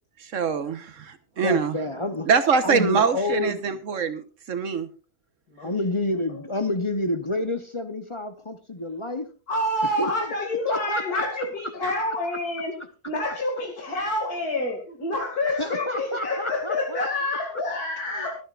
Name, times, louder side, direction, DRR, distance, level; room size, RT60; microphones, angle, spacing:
voice 1, 0.2-1.8 2.3-4.9, right 5 dB, 55° right, 10 dB, 1.4 m, -24 dB
voice 2, 1.4-2.3 2.6-3.8 5.6-9.3 9.8-10.1 10.4-11.2 15.5-17.1 17.5-17.6 18.1-18.3, left 2 dB, 30° left, 9 dB, 0.7 m, -29 dB
voice 3, 9.5-12.7 13.1-18.4, left 1 dB, 80° left, 1 dB, 2.8 m, -27 dB
25.0 x 9.3 x 2.5 m, 0.35 s
omnidirectional pair, 1.6 m